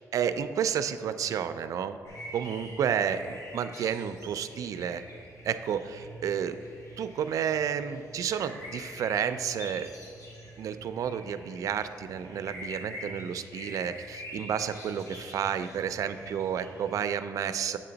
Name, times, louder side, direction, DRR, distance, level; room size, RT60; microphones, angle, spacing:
voice 1, 0.1-2.0 2.3-5.0 5.4-6.6 7.0-9.9 10.6-17.8, right 8 dB, 65° right, 11 dB, 0.3 m, -31 dB
sound 1, 2.1-16.9, equal, 55° left, 1.7 m, -45 dB
7.5 x 6.7 x 3.9 m, 2.5 s
wide cardioid pair, 150°, 6 cm